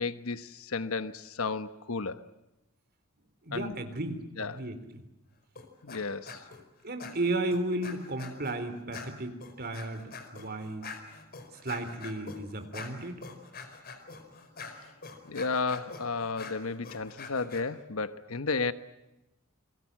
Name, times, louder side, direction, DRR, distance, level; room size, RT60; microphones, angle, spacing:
voice 1, 0.0-2.2 3.5-3.8 4.4-4.6 5.8-6.5 15.2-18.7, left 4 dB, 80° left, 11 dB, 1.2 m, -33 dB
voice 2, 3.4-5.0 6.8-10.9 11.6-13.2, right 2 dB, 45° right, 9 dB, 3.7 m, -34 dB
sound 1, 5.6-6.0 6.3-6.6 7.0-8.6 8.9-17.6, left 4 dB, 45° left, 4.8 m, -45 dB
29.0 x 23.0 x 7.6 m, 0.93 s
head